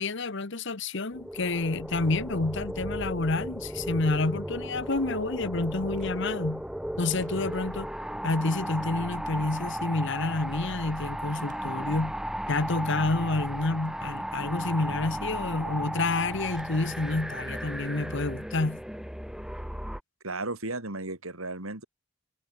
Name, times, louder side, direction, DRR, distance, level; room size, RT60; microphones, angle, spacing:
voice 1, 0.0-6.6 7.0-7.9 8.2-12.1 12.5-18.8, left 3 dB, 60° left, 1.2 m, -29 dB
horror whispers, 1.1-20.0, equal, ahead, 1.2 m, -35 dB
sound 1, 4.9-6.5 6.9-9.5 11.3-12.0 12.5-12.6 13.6-14.1 14.4-14.8 16.4-17.0 17.3-18.7, right 2 dB, 40° right, 6.4 m, -58 dB
voice 2, 20.2-21.8, right 2 dB, 90° right, 5.7 m, -34 dB
head